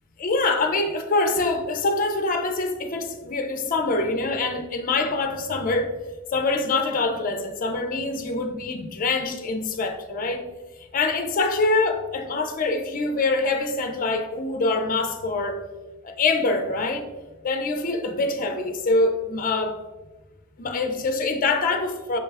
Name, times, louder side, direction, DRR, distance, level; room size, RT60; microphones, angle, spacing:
voice 1, 0.2-5.9 6.3-10.5 10.9-15.6 16.0-17.1 17.4-19.8 20.6-22.2, left 3 dB, 40° left, 6 dB, 0.5 m, -24 dB
6.0 x 2.3 x 3.3 m, 1.2 s
head